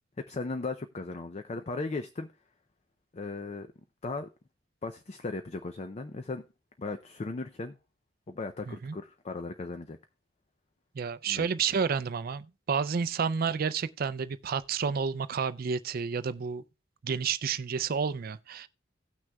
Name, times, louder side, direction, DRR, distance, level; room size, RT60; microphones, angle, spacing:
voice 1, 0.2-2.3 3.1-3.7 4.0-4.3 4.8-6.4 6.8-7.8 8.3-10.0 11.3-11.5, left 3 dB, 35° left, 0.4 m, -37 dB
voice 2, 11.0-16.6 17.0-18.7, right 6 dB, 50° right, 0.4 m, -30 dB
17.5 x 6.1 x 2.3 m
head